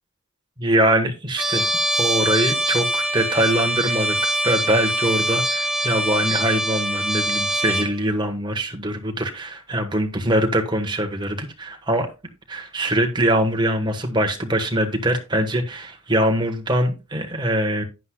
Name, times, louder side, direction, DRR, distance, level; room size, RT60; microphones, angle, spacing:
voice 1, 0.6-1.7 2.0-12.1 12.5-17.8, right 1 dB, 20° right, 1.3 m, -23 dB
Trumpet, 1.4-7.9, right 1 dB, 5° right, 0.9 m, -23 dB
10.5 x 10.0 x 2.3 m
head